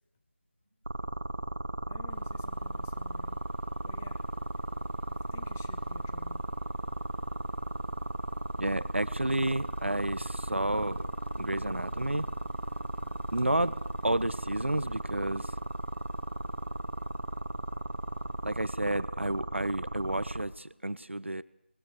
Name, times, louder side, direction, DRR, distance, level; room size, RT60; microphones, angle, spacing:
sound 1, 0.9-20.4, right 1 dB, 55° right, 2.5 m, -35 dB
voice 1, 1.9-3.4 3.8-4.2 5.3-6.4, left 6 dB, 10° left, 0.8 m, -52 dB
sound 2, 2.1-18.6, left 1 dB, 80° left, 3.7 m, -54 dB
voice 2, 8.6-11.1 11.3-12.3 13.0-13.8 14.0-15.5 18.4-21.4, right 1 dB, 80° right, 1.4 m, -31 dB
24.0 x 20.5 x 6.6 m
figure-of-eight pair, 170°, 6 cm